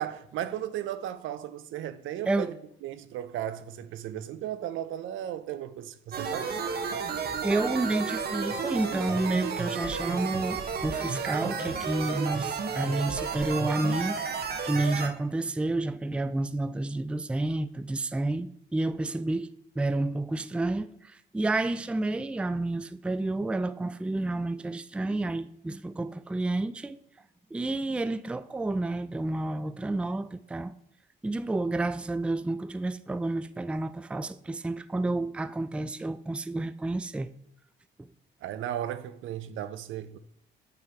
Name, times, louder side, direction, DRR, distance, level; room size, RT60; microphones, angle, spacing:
voice 1, 0.0-2.6 2.8-7.0 14.7-15.0 38.4-40.2, right 11 dB, 80° right, 0.6 m, -36 dB
sound 1, 6.1-15.1, right 5 dB, 55° right, 1.0 m, -32 dB
voice 2, 7.4-14.2 14.6-27.0 27.5-30.7 31.2-37.3, right 2 dB, 5° right, 0.3 m, -30 dB
8.6 x 3.9 x 4.4 m
cardioid pair, 90°, 20 cm